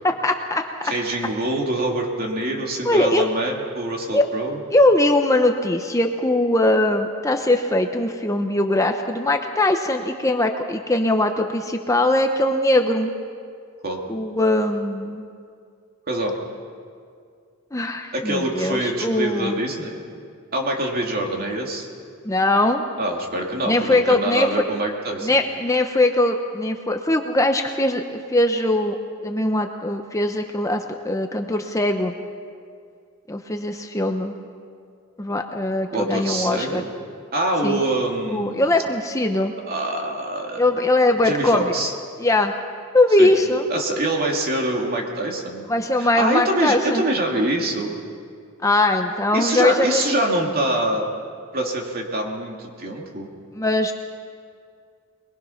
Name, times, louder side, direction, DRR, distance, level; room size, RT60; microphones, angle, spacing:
voice 1, 0.0-0.6 2.8-3.2 4.1-4.3 4.7-13.1 14.1-15.2 17.7-19.6 22.2-22.8 23.7-24.6 25.2-29.0 29.2-32.1 33.3-34.3 35.2-36.8 37.6-37.8 38.3-39.5 40.6-41.7 42.2-42.5 42.9-43.6 45.7-47.0 48.6-50.1 53.5-53.9, left 1 dB, 15° left, 5 dB, 0.8 m, -21 dB
voice 2, 0.8-4.6 13.8-14.0 16.1-16.4 18.1-20.0 20.5-21.9 23.0-25.3 35.9-36.9 37.3-38.6 39.7-40.7 41.2-41.9 43.2-43.3 43.7-45.7 46.0-48.0 49.3-51.1 51.5-53.3, right 1 dB, 45° right, 0 dB, 2.7 m, -25 dB
23.0 x 21.5 x 5.8 m, 2.2 s
head